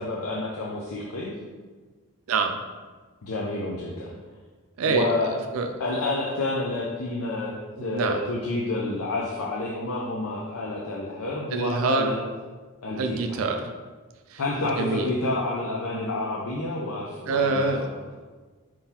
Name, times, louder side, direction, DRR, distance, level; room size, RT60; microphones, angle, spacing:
voice 1, 0.0-1.4 3.2-4.1 4.8-5.3 5.8-7.5 7.8-12.2 12.8-13.4 14.4-17.7, left 2 dB, 80° left, -3 dB, 0.6 m, -29 dB
voice 2, 2.3-2.6 4.8-5.7 7.8-8.2 11.5-12.1 13.0-13.7 14.3-14.4 14.8-15.1 17.2-17.9, right 4 dB, 70° right, 5 dB, 0.4 m, -26 dB
4.6 x 3.8 x 2.8 m, 1.4 s
head